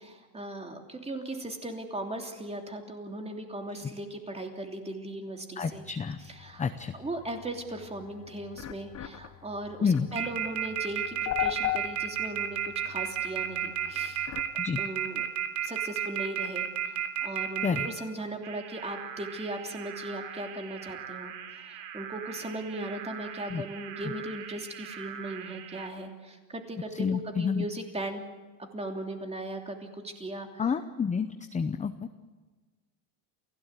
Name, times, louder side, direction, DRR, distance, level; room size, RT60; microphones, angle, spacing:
voice 1, 0.0-5.8 6.2-6.7 6.9-12.6 12.8-14.3 14.8-15.2 15.6-28.3 28.7-30.7, right 1 dB, 15° right, 3 dB, 3.0 m, -38 dB
sound 1, 5.6-14.5, left 13 dB, 35° left, 1.3 m, -39 dB
voice 2, 5.6-6.2 6.6-6.9 9.8-10.1 14.6-14.8 17.6-17.9 23.5-23.6 27.0-27.7 30.6-32.1, left 6 dB, 15° left, 9 dB, 0.7 m, -29 dB
sound 2, 10.2-17.9 18.4-25.9, right 10 dB, 70° right, 3.6 m, -34 dB
28.5 x 17.0 x 8.3 m, 1.3 s
cardioid pair, 150°, 48 cm